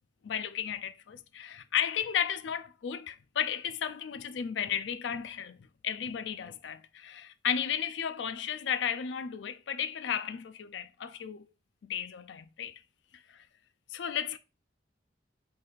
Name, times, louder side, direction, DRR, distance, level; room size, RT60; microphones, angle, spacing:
voice 1, 0.2-11.4 11.8-12.8 13.3-13.4 13.9-14.4, left 8 dB, 70° left, 0.4 m, -34 dB
3.9 x 3.3 x 3.9 m
head